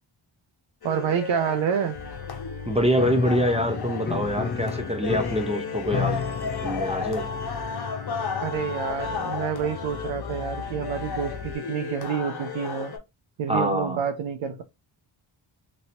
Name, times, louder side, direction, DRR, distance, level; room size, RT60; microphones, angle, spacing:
sound 1, 0.8-13.0, left 5 dB, 50° left, 0.8 m, -34 dB
voice 1, 0.8-2.0 8.4-12.9 13.4-14.6, right 7 dB, 65° right, 0.5 m, -28 dB
Bass guitar, 2.0-11.6, left 6 dB, 75° left, 0.6 m, -40 dB
voice 2, 2.7-6.2 6.6-7.3 13.5-14.0, equal, 15° right, 0.6 m, -25 dB
Piano, 2.9-11.4, left 5 dB, 25° left, 0.3 m, -35 dB
3.0 x 2.7 x 2.7 m
cardioid pair, 60°, 50 cm